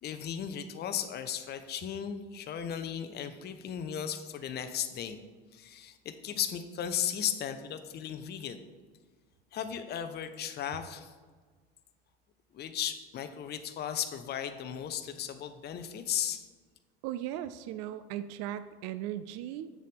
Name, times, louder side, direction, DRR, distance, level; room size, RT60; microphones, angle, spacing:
voice 1, 0.0-5.2 5.5-8.6 9.5-11.1 12.5-16.5, left 9 dB, 30° left, 9 dB, 0.7 m, -36 dB
voice 2, 17.0-19.7, right 12 dB, 50° right, 13 dB, 0.4 m, -37 dB
7.5 x 6.4 x 3.5 m, 1.4 s
hypercardioid pair, 80°, 32 cm